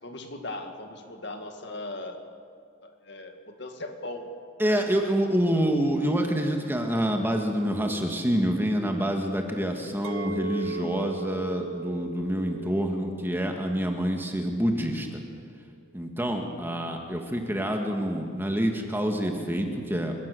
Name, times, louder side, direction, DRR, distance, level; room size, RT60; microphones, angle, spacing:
voice 1, 0.0-2.3 2.8-4.3 4.6-4.9, left 2 dB, 55° left, 5 dB, 2.2 m, -38 dB
voice 2, 4.6-15.2 15.9-20.2, equal, 10° right, 3 dB, 1.8 m, -27 dB
Chink clink, 10.0-15.2, right 4 dB, 90° right, 1.1 m, -38 dB
29.0 x 16.5 x 6.9 m, 2.2 s
head